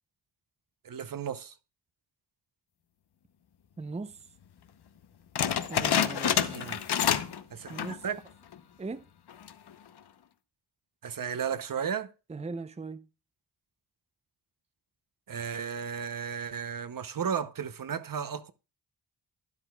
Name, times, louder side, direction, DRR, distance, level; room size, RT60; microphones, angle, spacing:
voice 1, 0.8-1.5 6.5-6.8 7.5-8.2 11.0-12.1 15.3-18.5, right 7 dB, 55° right, 0.8 m, -34 dB
voice 2, 3.8-4.2 5.7-6.8 7.7-8.0 8.8-9.0 12.3-13.1, right 3 dB, 15° right, 0.6 m, -39 dB
sound 1, 5.4-7.4 7.7-8.0 8.5-8.6 9.3-9.7, left 9 dB, 70° left, 0.8 m, -27 dB
12.0 x 9.8 x 2.3 m
cardioid pair, 60°, 41 cm